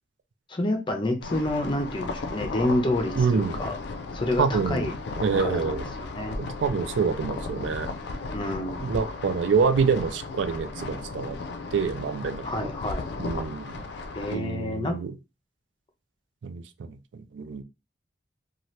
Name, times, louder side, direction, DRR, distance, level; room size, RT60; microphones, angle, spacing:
voice 1, 0.5-3.7 4.1-4.9 5.4-6.4 8.3-8.9 12.4-13.1 14.1-14.9, left 1 dB, 30° left, 0.6 m, -28 dB
sound 1, 1.2-14.4, left 3 dB, 65° left, 0.4 m, -35 dB
voice 2, 3.2-3.6 4.4-4.9 5.2-5.8 6.4-7.9 8.8-11.4 11.7-12.7 13.2-13.8 14.3-15.1 16.4-16.9 17.3-17.6, right 5 dB, 80° right, 0.4 m, -26 dB
2.7 x 2.4 x 3.1 m
head